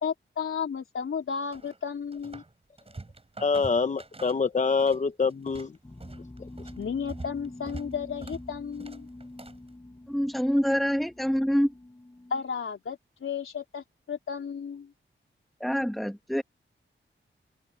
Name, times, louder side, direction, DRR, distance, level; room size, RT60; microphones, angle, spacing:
voice 1, 0.0-2.4 6.8-9.1 12.3-14.9, left 6 dB, 85° left, 3.9 m, -33 dB
sound 1, 1.5-2.5 2.8-5.0 5.3-9.7, right 3 dB, 30° right, 7.5 m, -45 dB
voice 2, 3.4-5.7, left 5 dB, 35° left, 0.7 m, -25 dB
sound 2, 5.8-12.4, left 2 dB, 15° left, 7.1 m, -46 dB
voice 3, 10.1-11.7 15.6-16.4, equal, ahead, 1.8 m, -26 dB
wide cardioid pair, 140°, 21 cm